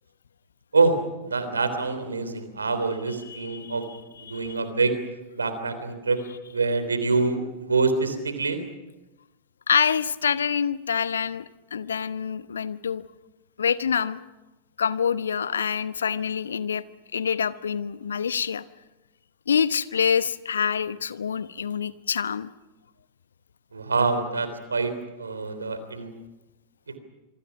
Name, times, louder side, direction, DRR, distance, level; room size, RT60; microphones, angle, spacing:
voice 1, 1.3-3.9 4.2-4.9 5.3-6.2 6.5-8.6 23.7-24.9 25.2-26.1 26.9-27.0, right 4 dB, 75° right, 10 dB, 3.4 m, -25 dB
voice 2, 3.3-3.8 4.2-4.6 9.7-11.4 11.7-13.0 13.6-14.2 14.8-16.8 17.1-18.6 19.5-22.5, left 7 dB, 70° left, 16 dB, 0.9 m, -26 dB
26.5 x 24.0 x 6.1 m, 1.1 s
figure-of-eight pair, 90°, 0 cm